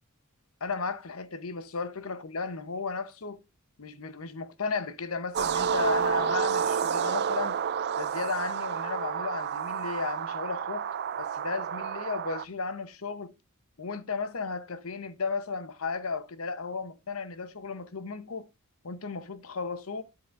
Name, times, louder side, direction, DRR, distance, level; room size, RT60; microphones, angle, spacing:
voice 1, 0.6-3.4 3.8-7.6 8.0-13.3 13.8-18.5 18.8-20.0, left 4 dB, 70° left, 0.9 m, -34 dB
sound 1, 5.3-12.4, right 7 dB, 50° right, 0.4 m, -30 dB
10.5 x 8.0 x 2.5 m
head